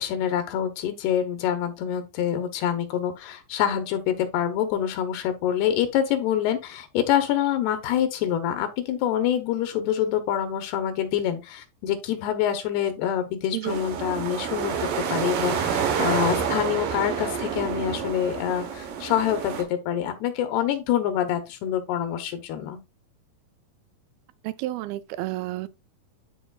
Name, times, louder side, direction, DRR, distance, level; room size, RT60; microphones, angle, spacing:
voice 1, 0.0-22.8, left 10 dB, 85° left, 2.9 m, -26 dB
sound 1, 13.7-19.6, right 7 dB, 65° right, 2.6 m, -28 dB
voice 2, 24.4-25.7, right 16 dB, 80° right, 2.2 m, -31 dB
11.5 x 4.3 x 2.3 m
omnidirectional pair, 4.6 m